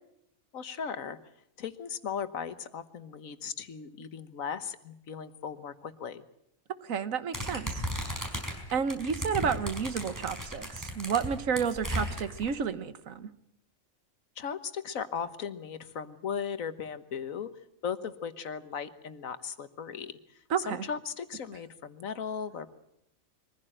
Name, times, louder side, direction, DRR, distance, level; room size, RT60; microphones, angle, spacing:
voice 1, 0.5-1.2 1.6-6.2 14.4-17.5 17.8-20.1 20.6-22.8, left 7 dB, 90° left, 12 dB, 1.6 m, -37 dB
voice 2, 6.8-7.8 8.7-13.3 20.5-20.8, right 6 dB, 85° right, 12 dB, 1.5 m, -31 dB
sound 1, 7.3-12.5, equal, 15° right, 5.1 m, -35 dB
23.0 x 15.5 x 8.9 m, 0.79 s
omnidirectional pair, 1.4 m